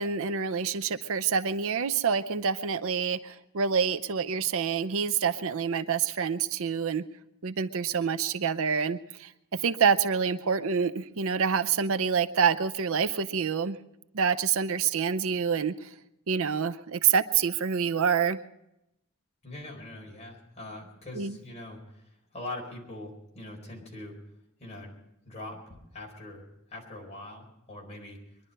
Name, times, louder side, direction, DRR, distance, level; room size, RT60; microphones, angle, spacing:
voice 1, 0.0-7.0 7.4-9.3 9.6-13.8 14.1-15.9 16.3-18.4 21.2-21.4, right 6 dB, 65° right, 13 dB, 0.6 m, -27 dB
voice 2, 19.4-24.2 24.6-24.9 25.2-28.4, left 1 dB, 30° left, -1 dB, 4.4 m, -42 dB
23.0 x 11.5 x 5.4 m, 0.84 s
head